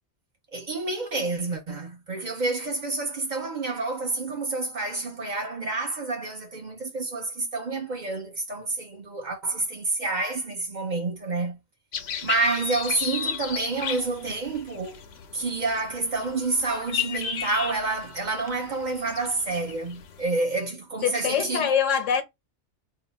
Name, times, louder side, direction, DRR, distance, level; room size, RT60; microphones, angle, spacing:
voice 1, 0.5-11.6 12.2-15.0 15.3-21.7, right 3 dB, 45° right, 0.7 m, -29 dB
sound 1, 11.9-20.2, left 8 dB, 65° left, 0.8 m, -35 dB
voice 2, 21.0-22.2, left 8 dB, 85° left, 1.1 m, -24 dB
2.8 x 2.2 x 4.0 m
omnidirectional pair, 1.2 m